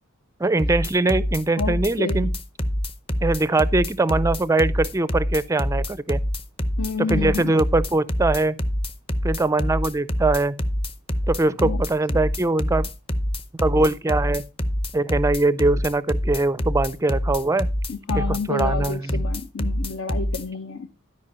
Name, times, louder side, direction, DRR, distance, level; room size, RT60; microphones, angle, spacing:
voice 1, 0.4-2.3 3.2-6.2 7.0-8.6 9.2-10.6 11.3-12.9 13.6-14.4 14.9-17.7 18.1-19.2, right 2 dB, 15° right, 0.4 m, -22 dB
sound 1, 0.6-20.4, equal, 25° left, 0.8 m, -25 dB
voice 2, 1.6-2.3 6.8-7.5 11.6-11.8 17.9-20.9, left 4 dB, 70° left, 0.8 m, -29 dB
12.5 x 5.2 x 5.5 m
head